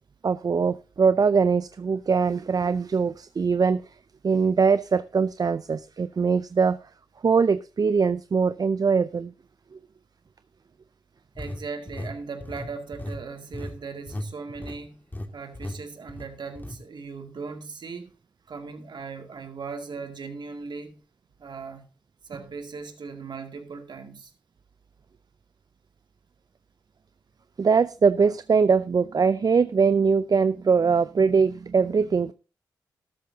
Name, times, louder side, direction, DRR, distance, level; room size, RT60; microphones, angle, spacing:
voice 1, 0.2-3.8 4.2-6.8 7.2-9.3 27.6-32.3, right 5 dB, 50° right, 0.5 m, -22 dB
sound 1, 11.3-14.3 14.5-14.8 15.1-15.3 15.5-15.8 16.1-16.8, left 1 dB, 20° left, 2.0 m, -36 dB
voice 2, 11.4-15.0 15.3-18.1 18.5-21.0 21.4-21.8 22.2-24.3, right 4 dB, 65° right, 2.3 m, -38 dB
13.0 x 12.5 x 2.8 m
supercardioid pair, 45°, 8 cm